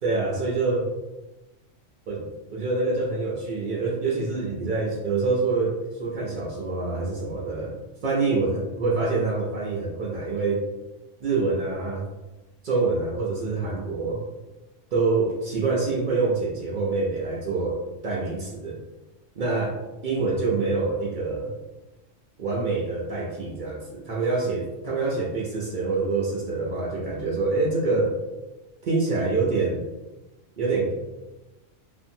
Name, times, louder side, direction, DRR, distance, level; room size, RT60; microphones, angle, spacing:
voice 1, 0.0-0.9 2.1-7.8 8.0-10.6 11.2-12.0 12.6-14.2 14.9-17.8 18.0-18.8 19.4-19.8 20.0-21.5 22.4-28.1 28.8-29.8 30.6-30.9, right 3 dB, 60° right, -3 dB, 0.5 m, -26 dB
2.8 x 2.5 x 2.6 m, 1.1 s
omnidirectional pair, 1.3 m